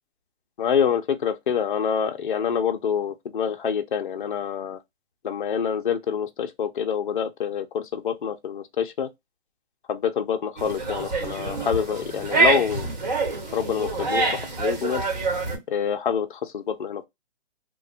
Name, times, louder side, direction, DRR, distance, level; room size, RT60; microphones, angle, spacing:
voice 1, 0.6-4.8 5.2-9.1 9.9-12.9 13.5-14.3 14.6-15.0 15.7-17.1, left 7 dB, 50° left, 0.4 m, -26 dB
sound 1, 10.6-15.6, right 3 dB, 40° right, 1.1 m, -26 dB
3.0 x 2.1 x 2.5 m
hypercardioid pair, 180°, 33 cm